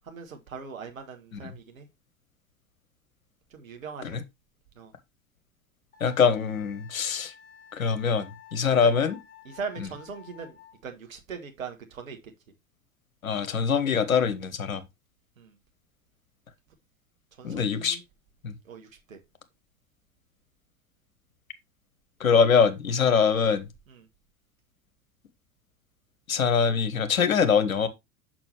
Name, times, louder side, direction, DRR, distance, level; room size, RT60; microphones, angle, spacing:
voice 1, 0.1-1.9 3.5-4.2 4.7-4.9 8.8-8.9 9.4-12.3 15.4-15.6 17.4-18.0 18.6-19.2 23.9-24.0, right 5 dB, 75° right, 1.4 m, -40 dB
Wind instrument woodwind instrument, 5.9-10.8, left 9 dB, 20° left, 2.3 m, -52 dB
voice 2, 6.0-7.3 7.7-9.2 9.8-9.9 13.2-14.8 17.4-18.0 18.4-18.5 22.2-23.7 26.3-27.9, left 6 dB, 75° left, 1.0 m, -23 dB
6.3 x 6.0 x 3.1 m
figure-of-eight pair, 80°, 41 cm